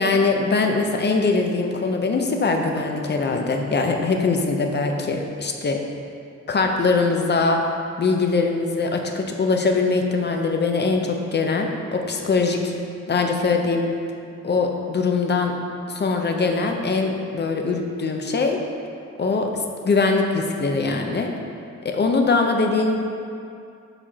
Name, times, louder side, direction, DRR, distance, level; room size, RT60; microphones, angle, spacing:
voice 1, 0.0-5.8 6.5-7.6 8.0-12.7 13.1-13.8 14.4-15.5 15.9-18.6 19.2-19.5 19.8-21.3 21.8-23.0, left 4 dB, 35° left, 3 dB, 0.5 m, -22 dB
5.0 x 4.2 x 6.0 m, 2.5 s
wide cardioid pair, 170°, 29 cm